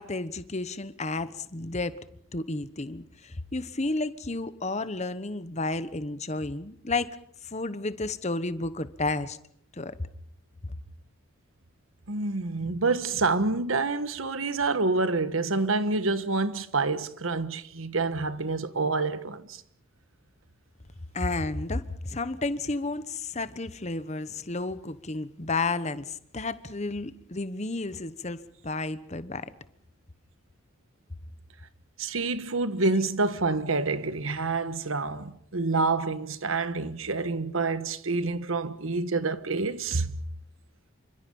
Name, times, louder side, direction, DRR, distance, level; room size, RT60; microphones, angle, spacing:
voice 1, 0.0-1.9 2.3-7.1 7.4-9.4 9.7-10.1 21.1-29.5, left 2 dB, 35° left, 1.2 m, -32 dB
voice 2, 12.1-19.6 32.0-40.1, right 3 dB, 80° right, 1.4 m, -27 dB
28.0 x 25.0 x 5.5 m
head